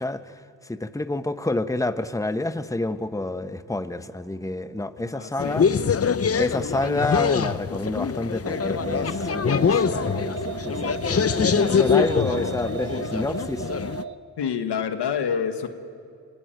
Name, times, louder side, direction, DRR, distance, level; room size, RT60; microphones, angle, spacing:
voice 1, 0.0-5.7 6.3-13.7, left 2 dB, 10° left, 11 dB, 1.0 m, -29 dB
voice 2, 5.0-5.9 14.4-15.7, left 7 dB, 85° left, 8 dB, 1.5 m, -28 dB
sound 1, 5.4-14.0, left 6 dB, 35° left, 0.7 m, -24 dB
sound 2, 8.4-14.2, right 6 dB, 70° right, 1.3 m, -35 dB
24.5 x 16.5 x 9.2 m, 2.4 s
cardioid pair, 45°, 40 cm